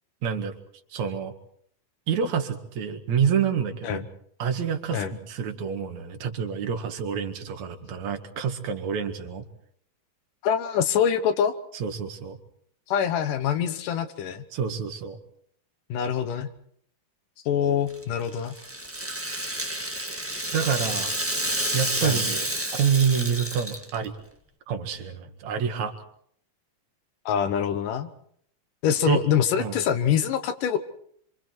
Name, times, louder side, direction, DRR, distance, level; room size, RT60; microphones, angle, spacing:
voice 1, 0.2-0.5 0.9-1.3 2.1-4.0 4.4-9.5 11.7-12.4 14.5-15.2 20.5-24.2 24.7-25.9 29.1-29.2 29.6-29.8, right 7 dB, 65° right, 5 dB, 3.2 m, -27 dB
voice 2, 10.4-11.5 12.9-14.4 15.9-16.5 17.5-18.5 22.0-22.2 27.3-28.1 28.8-30.8, left 8 dB, 90° left, 8 dB, 2.8 m, -25 dB
Rattle (instrument), 17.9-24.1, right 1 dB, 15° right, 0.5 m, -30 dB
27.5 x 25.5 x 4.6 m, 0.64 s
omnidirectional pair, 3.6 m